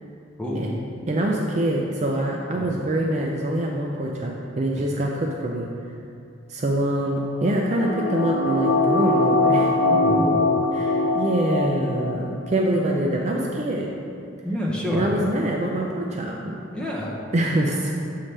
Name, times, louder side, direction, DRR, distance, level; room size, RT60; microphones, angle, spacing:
voice 1, 0.4-0.7 2.5-2.7 9.9-10.4 14.4-15.1 16.7-17.2, equal, 5° left, -5 dB, 0.8 m, -27 dB
voice 2, 1.1-5.7 6.5-9.7 10.8-13.9 14.9-16.6 17.3-17.9, right 1 dB, 35° right, -1 dB, 0.4 m, -24 dB
sound 1, 7.3-12.1 12.4-12.5, left 2 dB, 60° left, 0.9 m, -22 dB
7.3 x 5.6 x 3.3 m, 2.5 s
head